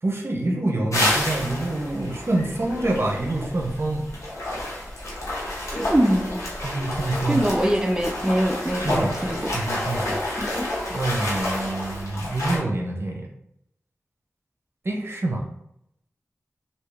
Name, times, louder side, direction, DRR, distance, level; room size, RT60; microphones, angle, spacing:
voice 1, 0.0-4.1 6.6-7.4 8.8-10.2 10.9-13.3 14.8-15.5, right 2 dB, 50° right, 0 dB, 0.7 m, -26 dB
sound 1, 0.9-12.6, left 1 dB, 75° left, 1.2 m, -29 dB
voice 2, 5.7-6.4 7.3-9.5, equal, 10° right, 1 dB, 0.5 m, -23 dB
3.3 x 2.7 x 3.3 m, 0.78 s
cardioid pair, 45°, 5 cm